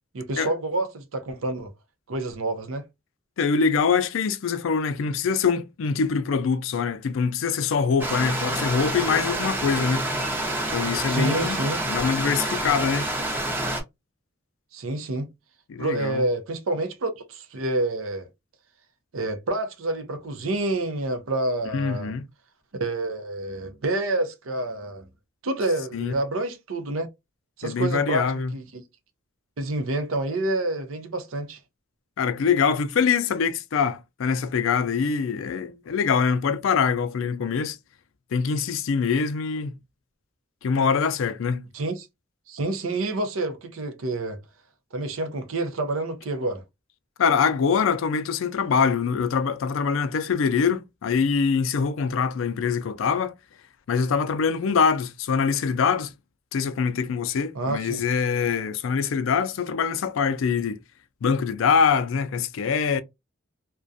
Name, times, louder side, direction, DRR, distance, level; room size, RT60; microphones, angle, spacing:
voice 1, 0.1-1.7 2.1-2.8 11.1-11.8 14.7-15.3 15.8-18.3 19.1-22.2 22.8-25.1 25.4-27.1 27.6-28.3 28.5-28.8 29.6-31.6 41.7-42.1 42.5-44.4 44.9-46.6 57.5-58.0, right 2 dB, 90° right, 0.6 m, -28 dB
voice 2, 3.4-10.1 10.7-13.1 15.7-16.2 21.7-22.2 25.9-26.1 27.6-28.5 32.2-37.8 38.3-39.8 40.6-41.7 47.2-53.3 53.9-56.1 56.5-60.8 61.2-63.0, left 6 dB, 75° left, 0.4 m, -24 dB
Stream, 8.0-13.8, right 1 dB, 10° right, 0.5 m, -27 dB
2.4 x 2.2 x 2.5 m
head